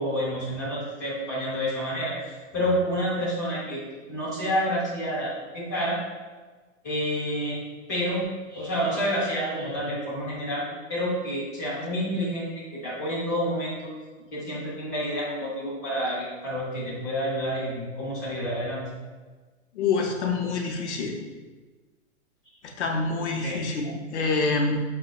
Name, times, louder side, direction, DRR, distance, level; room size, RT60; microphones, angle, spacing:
voice 1, 0.0-2.2 2.5-3.8 4.1-6.0 6.8-7.6 7.9-8.2 8.5-10.6 10.9-13.8 14.3-18.8 23.4-23.6, equal, 15° left, -10 dB, 0.5 m, -28 dB
voice 2, 19.8-21.3 22.8-24.8, left 3 dB, 60° left, 1 dB, 0.6 m, -26 dB
5.7 x 2.1 x 2.3 m, 1.3 s
hypercardioid pair, 180°, 40 cm